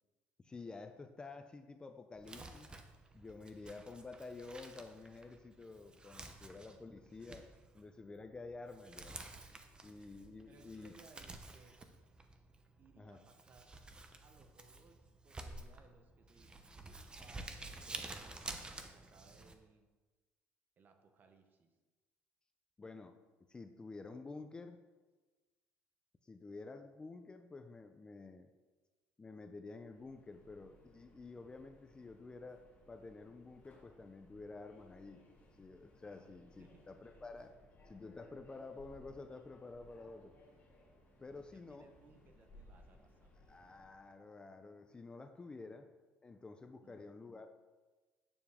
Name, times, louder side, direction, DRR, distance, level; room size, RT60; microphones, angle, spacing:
voice 1, 0.4-2.8 3.1-9.2 9.8-10.9 13.0-13.2 22.8-23.1 23.5-24.8 26.2-28.5 29.2-35.2 35.6-40.4 41.2-41.9 43.5-45.9 46.2-47.5, left 3 dB, 20° left, 7 dB, 0.4 m, -50 dB
Crumpling crinkling, 2.1-19.5, right 2 dB, 20° right, 0.7 m, -51 dB
voice 2, 10.5-11.8 12.8-13.7 14.2-15.0 15.2-16.5 17.1-19.9 20.8-21.7 36.1-36.9 41.3-43.5 45.6-45.8 46.8-47.0, right 4 dB, 40° right, 6 dB, 1.0 m, -65 dB
Subway metro underground, 29.7-44.1, left 1 dB, 35° left, 2.0 m, -63 dB
8.6 x 7.0 x 3.5 m, 1.3 s
cardioid pair, 125°, 5 cm